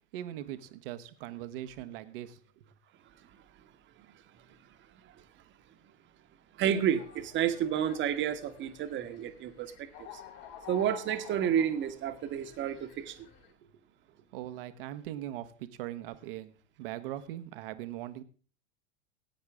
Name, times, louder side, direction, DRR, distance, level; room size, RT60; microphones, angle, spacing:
voice 1, 0.1-2.7 13.6-13.7 14.3-16.5 16.8-18.2, right 13 dB, 55° right, 11 dB, 1.3 m, -40 dB
voice 2, 6.5-9.9 10.1-10.2 10.7-13.3, right 9 dB, 35° right, 9 dB, 1.4 m, -30 dB
sound 1, 6.7-13.5, left 9 dB, 50° left, 3.3 m, -51 dB
18.5 x 9.5 x 3.6 m, 0.40 s
figure-of-eight pair, 85°, 34 cm